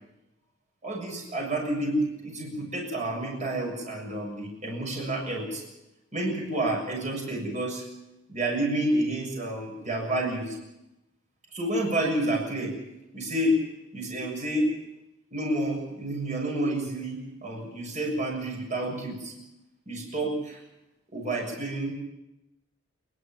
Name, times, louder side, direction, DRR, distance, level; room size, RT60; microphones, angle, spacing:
voice 1, 0.8-5.6 6.1-7.9 8.3-10.6 11.5-12.7 13.1-13.6 13.9-14.7 15.3-19.3 19.9-20.6 21.1-21.9, right 1 dB, 35° right, 0 dB, 6.9 m, -29 dB
28.0 x 11.5 x 9.0 m, 0.94 s
head